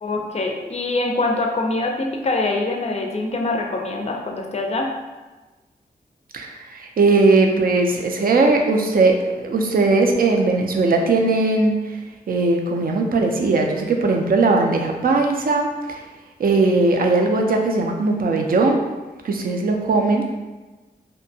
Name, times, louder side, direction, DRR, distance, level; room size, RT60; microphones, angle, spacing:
voice 1, 0.0-4.9, left 2 dB, 40° left, 2 dB, 0.4 m, -24 dB
voice 2, 6.3-12.0 12.3-16.0 16.4-18.8 19.2-20.3, right 3 dB, 60° right, 3 dB, 0.4 m, -19 dB
2.6 x 2.1 x 2.6 m, 1.2 s
wide cardioid pair, 75°, 17 cm